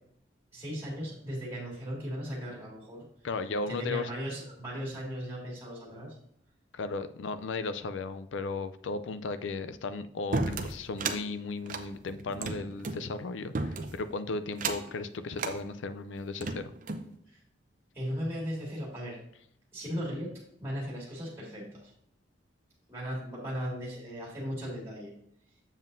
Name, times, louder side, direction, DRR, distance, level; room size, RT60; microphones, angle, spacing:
voice 1, 0.5-3.1 3.6-6.2 17.3-17.4 17.9-19.2 19.7-20.3 20.6-21.9 22.9-25.1, equal, 15° right, -4 dB, 2.1 m, -37 dB
voice 2, 3.2-4.1 6.7-16.7, left 3 dB, 75° left, 11 dB, 0.4 m, -35 dB
sound 1, 10.3-11.2 11.6-13.0 13.5-14.1 14.5-14.9 15.4-15.6 16.2-17.1, right 3 dB, 45° right, 0.6 m, -33 dB
7.3 x 7.3 x 2.6 m, 0.72 s
head